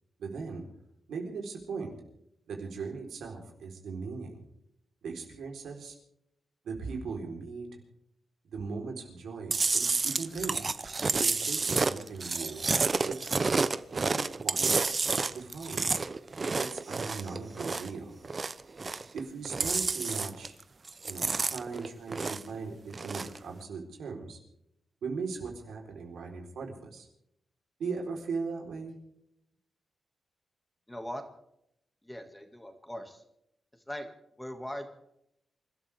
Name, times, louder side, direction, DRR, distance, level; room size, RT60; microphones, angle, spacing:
voice 1, 0.2-0.6 1.1-1.9 2.5-4.4 5.0-6.0 6.6-7.8 8.5-10.6 11.1-12.6 13.0-13.2 13.9-14.7 15.3-15.9 16.4-18.2 19.1-20.5 21.0-24.4 25.0-27.1 27.8-28.9, right 4 dB, 90° right, 2 dB, 4.1 m, -38 dB
Chewing mastication, 9.5-18.0 18.2-19.2 19.4-20.6 20.9-22.6 22.9-23.4, right 4 dB, 35° right, 0.8 m, -30 dB
voice 2, 30.9-31.2 32.0-33.2 33.7-34.1 34.4-34.9, equal, 10° left, 5 dB, 2.1 m, -40 dB
28.0 x 13.0 x 3.6 m, 0.77 s
cardioid pair, 105°, 0 cm